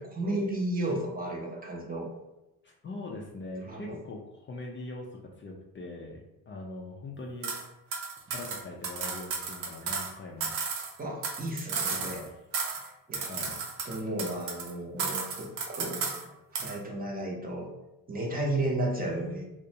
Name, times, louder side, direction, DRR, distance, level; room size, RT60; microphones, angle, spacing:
voice 1, 0.0-2.1 3.6-4.0 9.8-9.9 11.0-12.2 12.7-13.5 13.8-16.1 16.5-17.7 18.1-19.5, right 1 dB, 25° right, -1 dB, 0.6 m, -33 dB
voice 2, 2.6-7.5 8.3-10.6 11.9-12.4 13.3-13.5, left 2 dB, 30° left, -1 dB, 0.4 m, -42 dB
sound 1, 7.4-7.6 7.9-10.1 10.4-12.3 12.5-12.9 13.1-14.7 15.0-16.2 16.5-16.8, right 5 dB, 90° right, 0.6 m, -34 dB
2.5 x 2.1 x 2.7 m, 0.98 s
cardioid pair, 85°, 38 cm